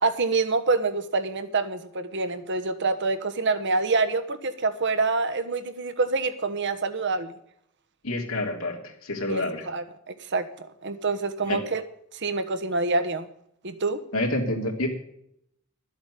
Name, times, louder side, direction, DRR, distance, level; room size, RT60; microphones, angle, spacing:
voice 1, 0.0-7.3 9.3-9.8 10.3-11.8 12.1-13.3 13.6-14.0, right 3 dB, 60° right, 10 dB, 1.2 m, -26 dB
voice 2, 8.0-9.7 11.4-11.6 14.1-14.9, left 1 dB, 85° left, 1 dB, 3.2 m, -28 dB
13.0 x 8.0 x 6.6 m, 0.72 s
head